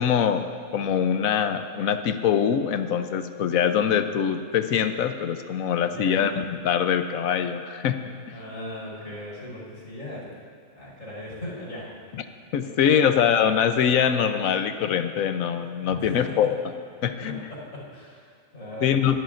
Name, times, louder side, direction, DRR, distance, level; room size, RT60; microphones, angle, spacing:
voice 1, 0.0-8.0 8.3-8.4 12.5-16.5 17.0-17.4 18.8-19.2, left 8 dB, 85° left, 9 dB, 1.1 m, -23 dB
voice 2, 5.8-6.2 8.3-10.3 10.8-11.9 12.6-13.0 15.9-16.3 17.2-19.2, left 1 dB, 65° left, -7 dB, 4.7 m, -38 dB
25.0 x 11.5 x 2.6 m, 2.3 s
omnidirectional pair, 1.4 m